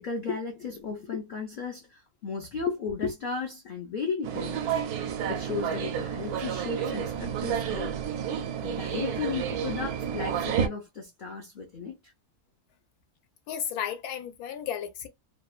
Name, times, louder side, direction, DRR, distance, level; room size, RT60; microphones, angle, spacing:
voice 1, 0.0-7.9 8.6-11.9, left 5 dB, 60° left, 0.5 m, -35 dB
sound 1, 4.2-10.7, right 8 dB, 80° right, 1.1 m, -30 dB
voice 2, 13.5-15.1, left 9 dB, 85° left, 1.1 m, -33 dB
2.8 x 2.1 x 2.3 m
omnidirectional pair, 1.6 m